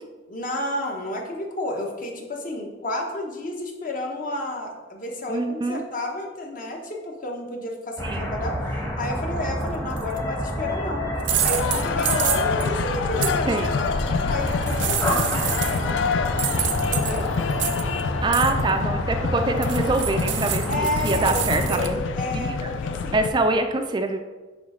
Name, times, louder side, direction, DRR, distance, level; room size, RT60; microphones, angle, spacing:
voice 1, 0.3-8.6 9.0-11.1 11.4-13.8 14.3-16.0 16.9-17.3 20.7-23.3, left 1 dB, 45° left, 1 dB, 1.1 m, -31 dB
voice 2, 5.3-5.8 8.0-8.3 13.5-13.8 15.0-15.2 18.2-22.0 22.3-22.5 23.1-24.2, right 2 dB, 25° right, 6 dB, 0.3 m, -24 dB
sound 1, 8.0-21.9, equal, 20° left, 1.1 m, -29 dB
sound 2, 10.0-10.2 11.2-12.7 13.2-13.3 14.5-15.9 16.4-18.0 18.3-18.6 19.6-21.9, right 11 dB, 75° right, 0.5 m, -28 dB
sound 3, 11.3-23.3, left 5 dB, 85° left, 0.4 m, -27 dB
8.6 x 3.2 x 4.9 m, 1.3 s
head